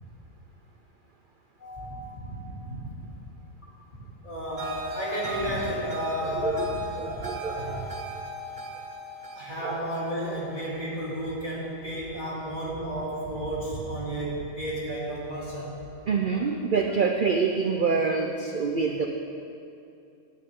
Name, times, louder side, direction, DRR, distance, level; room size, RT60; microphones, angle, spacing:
voice 1, 1.6-3.1 3.6-6.8 7.1-7.3 9.3-15.8, equal, 35° left, -7 dB, 2.7 m, -33 dB
sound 1, 4.6-11.7, right 1 dB, 35° right, 1.2 m, -37 dB
voice 2, 6.2-7.8 9.6-9.8 16.1-19.1, right 5 dB, 50° right, 3 dB, 0.6 m, -27 dB
14.5 x 10.0 x 3.7 m, 2.7 s
omnidirectional pair, 1.5 m